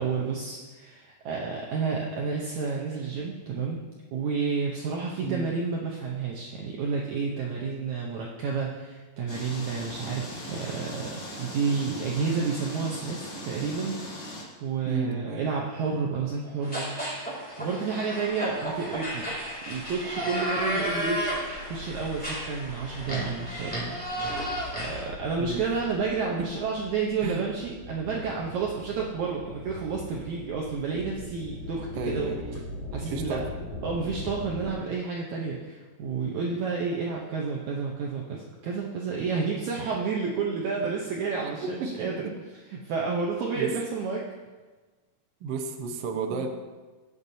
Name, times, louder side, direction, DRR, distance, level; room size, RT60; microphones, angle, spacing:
voice 1, 0.0-3.8 4.1-14.0 14.6-17.2 17.6-19.3 19.7-21.2 21.7-23.8 24.8-32.3 32.9-33.4 33.8-42.2 42.7-44.2 46.3-46.5, right 5 dB, 70° right, -2 dB, 1.9 m, -30 dB
sound 1, 9.3-14.4, left 1 dB, 85° left, 4.6 m, -39 dB
voice 2, 14.8-15.5 25.4-25.6 26.4-26.5 27.2-27.5 32.0-32.6 33.1-33.5 41.6-42.3 43.5-43.7 45.4-46.5, right 4 dB, 85° right, 4 dB, 1.3 m, -32 dB
sound 2, 16.6-25.1, right 1 dB, 5° left, 1.9 m, -33 dB
sound 3, 18.2-18.3 18.6-34.7, left 2 dB, 70° left, 4.6 m, -42 dB
20.5 x 7.3 x 2.7 m, 1.3 s
omnidirectional pair, 4.2 m